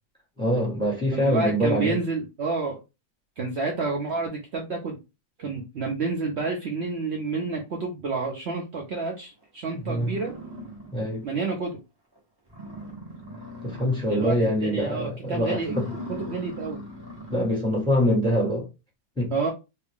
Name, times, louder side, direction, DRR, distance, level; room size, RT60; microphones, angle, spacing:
voice 1, 0.4-2.0 9.7-10.1 10.9-11.3 13.6-15.9 17.3-18.7 19.2-19.3, equal, 5° left, 1.2 m, -24 dB
voice 2, 1.1-2.8 3.4-5.0 5.4-10.3 11.2-11.8 14.1-14.4 14.6-15.8 16.1-16.8 19.3-19.5, right 4 dB, 80° right, 0.6 m, -29 dB
sound 1, 9.4-9.5 9.9-11.3 11.7-11.8 12.1-12.2 12.5-14.4 14.7-15.0 15.5-17.5, equal, 20° right, 0.7 m, -40 dB
2.8 x 2.6 x 3.5 m
omnidirectional pair, 2.0 m